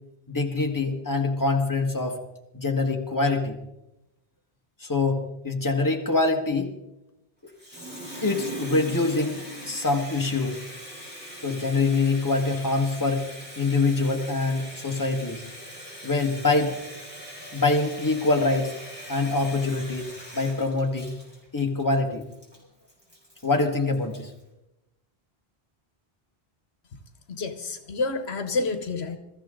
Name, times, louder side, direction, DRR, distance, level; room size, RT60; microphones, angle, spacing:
voice 1, 0.3-2.2 2.5-3.6 4.8-6.7 8.2-9.4 9.6-10.6 11.4-13.3 13.6-15.4 16.0-16.8 17.5-18.7 19.1-20.1 20.3-21.1 21.5-22.2 23.4-24.3, left 3 dB, 20° left, 2 dB, 1.7 m, -24 dB
Water tap faucet, 7.5-24.4, equal, 10° right, 5.0 m, -41 dB
voice 2, 27.3-29.2, left 3 dB, 75° left, 9 dB, 1.3 m, -29 dB
22.0 x 14.0 x 3.8 m, 0.90 s
omnidirectional pair, 1.1 m